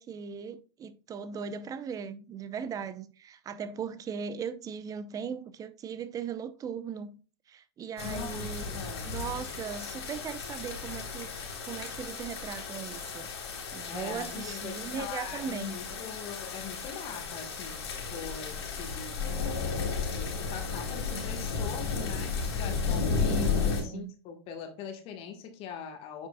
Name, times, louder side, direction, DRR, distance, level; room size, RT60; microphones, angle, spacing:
voice 1, 0.0-7.2 7.5-13.3 13.7-16.0 23.6-24.1, right 7 dB, 25° right, 0.7 m, -38 dB
sound 1, 8.0-23.8, left 5 dB, 75° left, 3.2 m, -34 dB
voice 2, 8.0-9.1 13.9-19.3 20.1-26.3, left 7 dB, 45° left, 1.5 m, -42 dB
9.1 x 5.8 x 2.3 m
hypercardioid pair, 110°, 14 cm